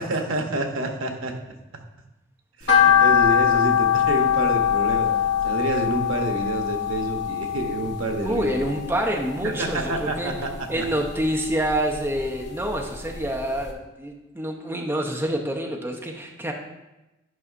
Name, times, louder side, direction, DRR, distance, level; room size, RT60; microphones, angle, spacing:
voice 1, 0.0-1.3 2.6-5.1 5.4-8.5 9.4-10.9, right 2 dB, 85° right, 4 dB, 0.9 m, -28 dB
sound 1, 2.7-9.0 9.4-10.5 10.9-12.3 12.6-12.7 13.2-13.3 13.6-13.7, left 9 dB, 60° left, 1.1 m, -22 dB
voice 2, 8.2-10.3 10.7-16.5, right 1 dB, 10° right, 0 dB, 0.6 m, -27 dB
11.0 x 5.4 x 2.5 m, 1.0 s
head